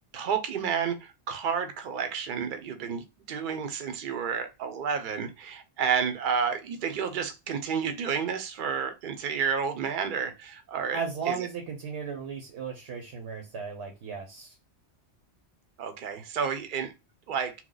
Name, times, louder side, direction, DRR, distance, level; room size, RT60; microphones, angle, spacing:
voice 1, 0.1-11.0 11.3-11.5 15.8-16.9 17.3-17.5, right 6 dB, 55° right, 0.7 m, -30 dB
voice 2, 10.9-14.6, right 6 dB, 80° right, 1.0 m, -35 dB
3.0 x 2.1 x 3.8 m
omnidirectional pair, 1.1 m